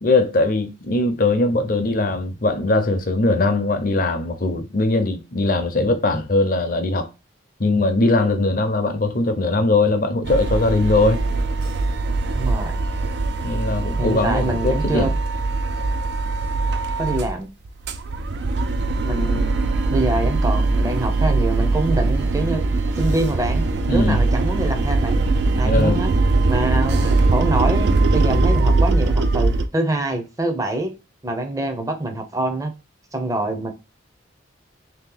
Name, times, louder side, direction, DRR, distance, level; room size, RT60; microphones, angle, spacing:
voice 1, 0.0-7.1 7.6-11.2 13.4-15.1 23.9-24.2 25.6-26.0, left 2 dB, 45° left, 0.7 m, -20 dB
sound 1, 10.2-17.3 17.7-29.7, right 3 dB, 55° right, 0.4 m, -21 dB
voice 2, 12.3-12.7 14.0-15.1 17.0-17.5 19.0-19.5 19.9-22.7 23.0-25.2 25.6-26.1 26.5-30.9 31.2-32.7 33.1-33.7, right 2 dB, 15° right, 0.6 m, -25 dB
3.2 x 2.9 x 3.8 m
head